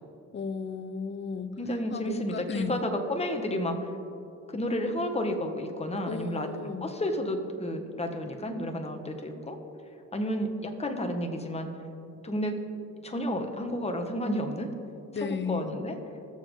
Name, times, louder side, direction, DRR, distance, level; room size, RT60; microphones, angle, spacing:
voice 1, 0.3-1.6 1.9-2.8 6.1-6.9 15.1-15.7, left 5 dB, 40° left, 11 dB, 0.8 m, -34 dB
voice 2, 1.6-3.9 4.5-6.5 6.8-9.6 10.1-11.7 12.2-12.6 13.0-14.7 15.5-16.0, equal, 20° left, 4 dB, 1.5 m, -31 dB
21.0 x 7.2 x 3.8 m, 2.8 s
cardioid pair, 90°, 30 cm